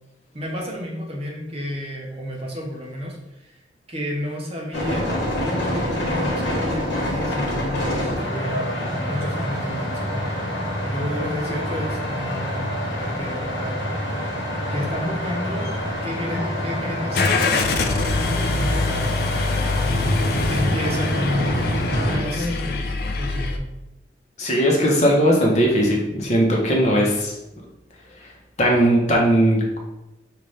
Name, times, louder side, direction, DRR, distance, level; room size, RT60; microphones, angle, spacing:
voice 1, 0.3-3.6 3.9-10.2 10.8-13.8 14.7-15.7 16.0-19.8 20.5-21.7 22.1-22.8 23.1-23.6, equal, 30° right, -1 dB, 0.7 m, -31 dB
sound 1, 4.7-22.2, equal, 80° left, 1.2 m, -26 dB
Car / Engine starting, 17.1-23.6, left 3 dB, 55° left, 0.4 m, -24 dB
voice 2, 24.4-27.3 28.6-29.8, equal, 40° left, -2 dB, 0.8 m, -18 dB
5.5 x 2.5 x 3.2 m, 0.92 s
head